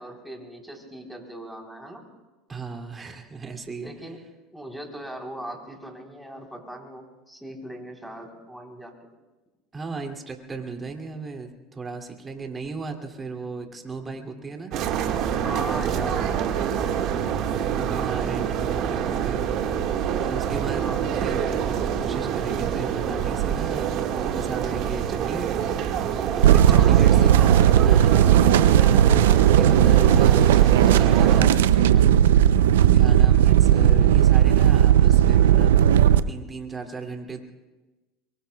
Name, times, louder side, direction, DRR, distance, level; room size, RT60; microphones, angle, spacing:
voice 1, 0.0-2.1 3.8-4.2 4.5-9.0 14.0-14.1 15.4-17.1 20.7-21.1 26.7-26.9, right 1 dB, ahead, 0 dB, 3.7 m, -39 dB
voice 2, 2.5-3.9 9.7-14.7 17.7-19.4 20.2-20.8 21.1-25.5 26.4-32.2 32.7-35.7 36.3-37.4, right 4 dB, 20° right, 3 dB, 2.5 m, -36 dB
sound 1, 14.7-31.4, right 8 dB, 55° right, 1.7 m, -26 dB
sound 2, 26.4-36.2, right 11 dB, 85° right, 0.5 m, -16 dB
25.0 x 23.0 x 2.3 m, 1.2 s
hypercardioid pair, 95°, 0 cm